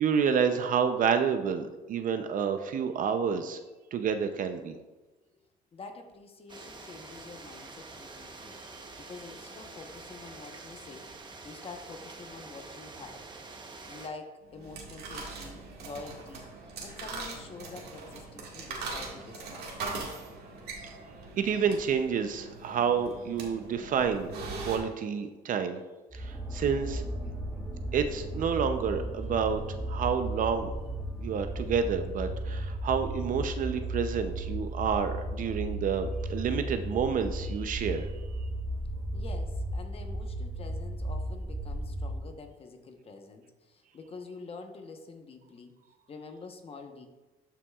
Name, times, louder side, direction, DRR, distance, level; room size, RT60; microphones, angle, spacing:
voice 1, 0.0-3.6 3.9-4.8 21.4-24.4 24.7-25.8 26.1-27.0 27.9-29.6 29.9-30.7 31.2-38.1, right 7 dB, 50° right, 8 dB, 0.6 m, -29 dB
voice 2, 5.7-11.1 11.4-13.2 13.9-19.6 39.1-45.7 46.1-47.1, left 4 dB, 35° left, 4 dB, 1.1 m, -47 dB
sound 1, 6.5-14.1, right 3 dB, 25° right, 1.0 m, -46 dB
sound 2, 14.5-24.8, right 3 dB, 75° right, 1.9 m, -41 dB
sound 3, 26.1-42.4, right 1 dB, 5° left, 1.9 m, -35 dB
12.5 x 5.7 x 2.4 m, 1.2 s
cardioid pair, 110°, 17 cm